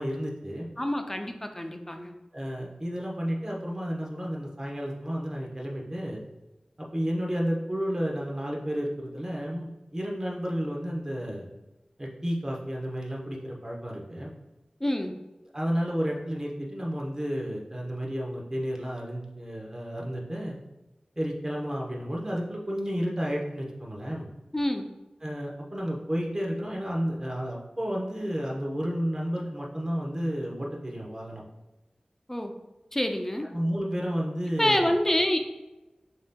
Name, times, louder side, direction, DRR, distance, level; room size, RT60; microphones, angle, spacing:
voice 1, 0.0-0.7 2.3-6.2 6.8-11.5 12.0-14.3 15.5-20.6 21.2-24.3 25.2-31.4 33.5-34.9, equal, 25° right, -2 dB, 0.8 m, -31 dB
voice 2, 0.8-2.1 14.8-15.2 24.5-24.9 32.3-32.5 32.9-33.5 34.6-35.4, left 1 dB, 15° left, 5 dB, 0.4 m, -27 dB
6.6 x 2.8 x 2.2 m, 1.0 s
wide cardioid pair, 65°, 2 cm